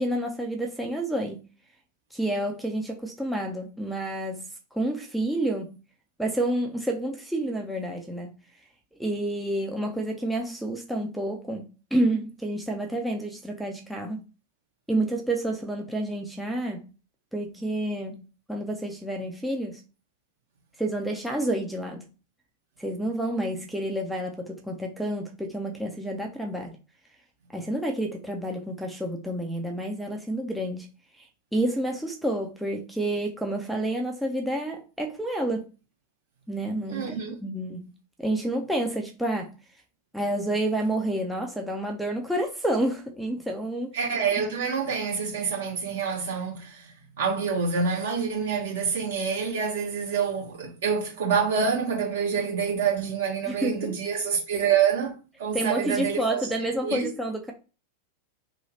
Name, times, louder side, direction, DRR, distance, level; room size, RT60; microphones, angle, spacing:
voice 1, 0.0-1.4 2.1-4.4 4.7-5.7 6.2-8.3 9.0-14.2 14.9-16.9 17.3-18.2 18.5-19.8 20.8-22.1 22.8-26.7 27.5-30.9 31.2-31.3 31.5-35.7 36.5-37.2 37.4-37.9 38.2-39.5 40.1-43.9 53.4-53.9 55.5-57.5, right 1 dB, ahead, 0.5 m, -29 dB
voice 2, 36.9-37.3 43.9-55.1 55.4-56.4 56.8-57.1, right 6 dB, 60° right, 1.5 m, -27 dB
3.1 x 2.2 x 2.7 m
figure-of-eight pair, 90°, 0 cm